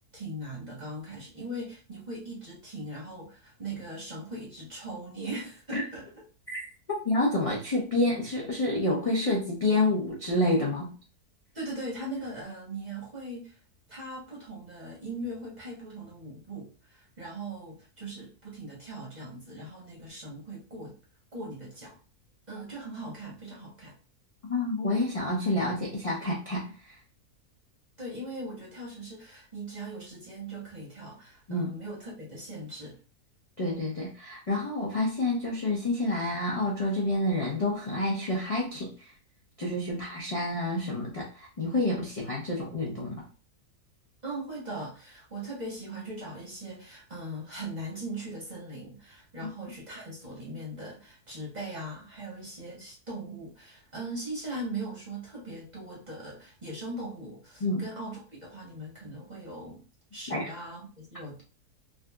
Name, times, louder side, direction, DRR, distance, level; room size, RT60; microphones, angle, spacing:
voice 1, 0.1-6.1 11.5-13.6 13.9-20.9 21.3-22.0 22.5-23.9 28.0-33.0 44.2-59.8 60.1-61.4, right 1 dB, 35° right, -4 dB, 0.9 m, -40 dB
voice 2, 6.5-10.9 24.5-27.0 31.5-31.7 33.6-39.1 39.6-43.2 57.6-57.8 60.3-60.5, left 2 dB, 40° left, -4 dB, 0.5 m, -28 dB
3.6 x 2.4 x 2.3 m, 0.36 s
omnidirectional pair, 1.6 m